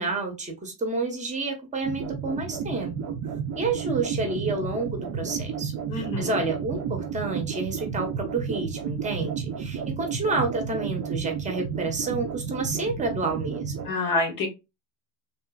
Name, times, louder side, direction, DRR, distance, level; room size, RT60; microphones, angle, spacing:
voice 1, 0.0-3.1 3.5-13.9, right 3 dB, 15° right, 3 dB, 0.9 m, -30 dB
sound 1, 1.8-13.9, right 7 dB, 35° right, 0.6 m, -32 dB
voice 2, 5.9-6.4 13.9-14.5, left 2 dB, 45° left, 4 dB, 0.9 m, -27 dB
2.7 x 2.5 x 2.3 m, 0.25 s
supercardioid pair, 110°, 48 cm